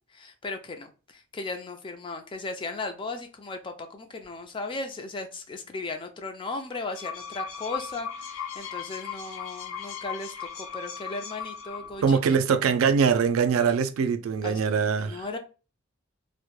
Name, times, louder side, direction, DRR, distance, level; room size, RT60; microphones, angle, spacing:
voice 1, 0.1-12.4 14.4-14.6 15.0-15.4, left 3 dB, 25° left, 0.3 m, -36 dB
sound 1, 6.7-12.1, left 7 dB, 85° left, 0.6 m, -37 dB
voice 2, 12.0-15.2, right 6 dB, 90° right, 0.3 m, -23 dB
2.2 x 2.1 x 3.0 m
head